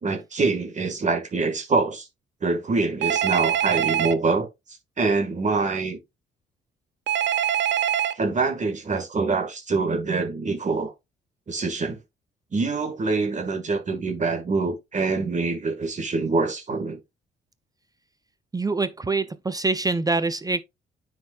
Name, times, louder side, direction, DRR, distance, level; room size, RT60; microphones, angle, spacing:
voice 1, 0.0-2.1 2.4-6.0 8.1-10.9 11.5-12.0 12.5-17.0, right 3 dB, 35° right, 1.8 m, -25 dB
Telephone, 3.0-4.1 7.1-8.1, right 10 dB, 65° right, 0.7 m, -23 dB
voice 2, 18.5-20.6, right 3 dB, 20° right, 0.6 m, -25 dB
9.3 x 5.2 x 2.4 m
cardioid pair, 90°, 20 cm